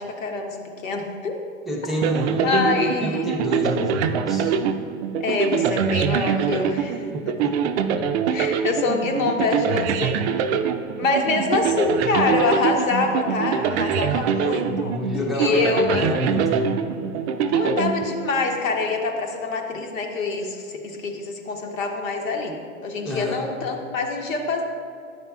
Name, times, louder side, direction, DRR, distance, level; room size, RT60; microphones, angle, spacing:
voice 1, 0.0-1.4 2.4-3.3 5.2-7.3 8.3-10.2 11.0-14.9 15.4-16.1 17.5-22.5 22.8-24.6, left 3 dB, 75° left, 2 dB, 1.1 m, -25 dB
voice 2, 1.7-4.5 7.1-8.1 14.0-14.3 14.6-16.7 23.0-23.5, left 1 dB, ahead, -3 dB, 0.6 m, -29 dB
sound 1, 2.0-18.6, right 7 dB, 55° right, 0.5 m, -24 dB
9.3 x 5.9 x 2.3 m, 2.4 s
hypercardioid pair, 110°, 40 cm